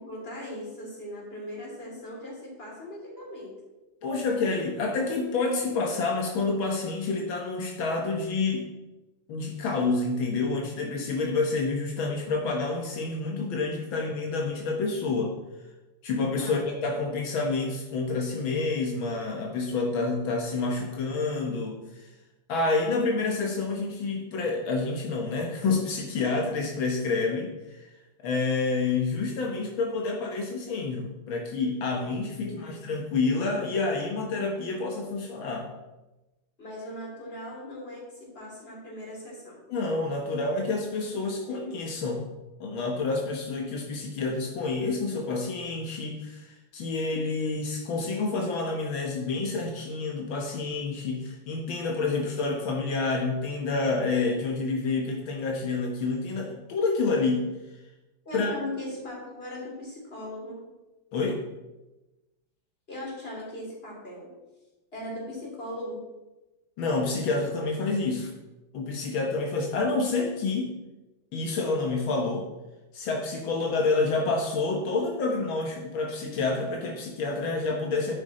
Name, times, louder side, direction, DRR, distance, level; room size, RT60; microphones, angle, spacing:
voice 1, 0.0-3.6 16.4-16.6 32.4-32.6 36.6-39.6 58.2-60.6 62.9-64.3 64.9-66.0, left 1 dB, 30° left, -3 dB, 3.4 m, -39 dB
voice 2, 4.0-8.7 9.3-15.3 16.0-21.8 22.5-27.9 28.2-35.7 39.7-42.2 42.6-57.5 58.3-58.5 61.1-61.4 66.8-68.3 68.7-70.7 71.3-72.4 72.9-78.1, left 3 dB, 80° left, 1 dB, 2.0 m, -28 dB
10.5 x 8.1 x 4.2 m, 1.0 s
omnidirectional pair, 2.1 m